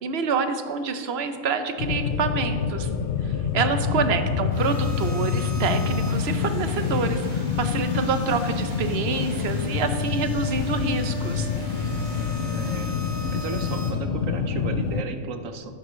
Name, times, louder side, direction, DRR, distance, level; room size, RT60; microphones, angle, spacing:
voice 1, 0.0-2.9 3.2-11.5, right 5 dB, 55° right, 8 dB, 0.9 m, -27 dB
sound 1, 1.8-15.0, left 6 dB, 65° left, 0.6 m, -27 dB
voice 2, 3.6-4.2 12.4-13.0 13.3-15.7, right 5 dB, 80° right, 8 dB, 1.1 m, -35 dB
sound 2, 4.5-13.9, equal, 35° right, 1.9 m, -39 dB
12.0 x 10.0 x 3.2 m, 2.2 s
omnidirectional pair, 1.4 m